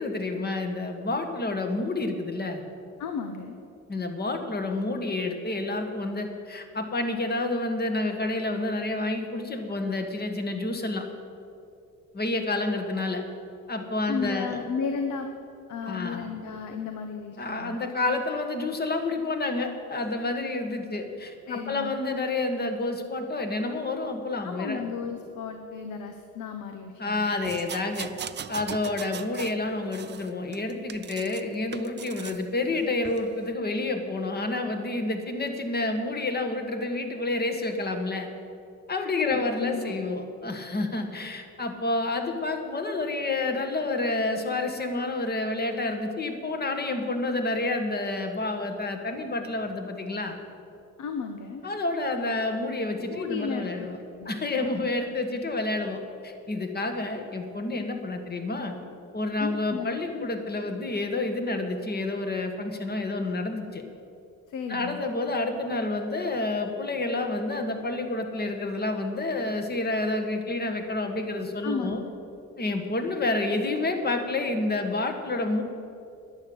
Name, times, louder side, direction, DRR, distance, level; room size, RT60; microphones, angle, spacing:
voice 1, 0.0-2.6 3.9-11.0 12.1-13.2 13.7-14.6 15.8-16.3 17.4-24.8 27.0-28.1 28.5-38.3 38.9-50.4 51.6-54.0 54.3-58.7 59.1-63.8 64.7-72.0 72.6-75.6, left 2 dB, 30° left, 5 dB, 1.8 m, -29 dB
voice 2, 3.0-3.6 14.1-15.3 15.7-17.8 21.5-21.9 24.4-27.3 39.2-40.1 51.0-51.6 53.1-53.9 54.2-54.9 59.4-60.3 64.5-65.0 71.6-72.0, left 5 dB, 80° left, 5 dB, 1.1 m, -34 dB
sound 1, 27.4-29.6 29.9-31.4 31.7-32.4 33.0-33.2, right 8 dB, 35° right, 0.6 m, -39 dB
11.5 x 10.5 x 8.0 m, 2.5 s
cardioid pair, 90°, 30 cm